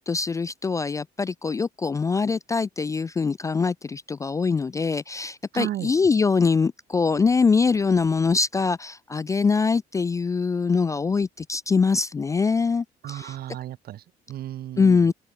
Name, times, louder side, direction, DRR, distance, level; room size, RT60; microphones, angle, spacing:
voice 1, 0.0-13.4 14.8-15.1, left 4 dB, 20° left, 0.3 m, -23 dB
voice 2, 5.5-5.9 13.0-15.1, right 13 dB, 65° right, 2.4 m, -34 dB
open air
cardioid pair, 110°, 17 cm